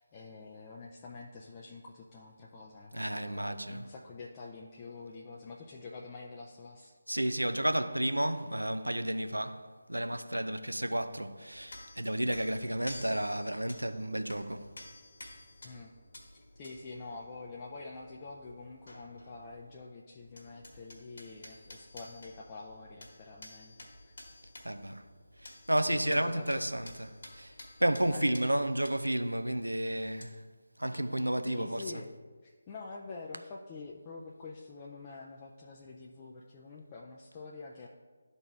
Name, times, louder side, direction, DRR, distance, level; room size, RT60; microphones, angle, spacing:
voice 1, 0.0-6.9 15.6-15.9 16.6-23.8 24.1-24.2 25.9-26.7 28.1-28.3 31.5-32.1 32.4-37.9, left 3 dB, 20° left, 0.5 m, -46 dB
voice 2, 2.9-3.9 7.1-9.6 9.9-14.7 24.6-25.0 25.4-27.5 27.8-30.4 30.8-31.8, right 1 dB, 80° right, 0.5 m, -32 dB
sound 1, 11.5-19.9 20.1-30.3, left 1 dB, 55° left, 1.5 m, -52 dB
12.0 x 4.1 x 3.4 m
figure-of-eight pair, 155°, 0 cm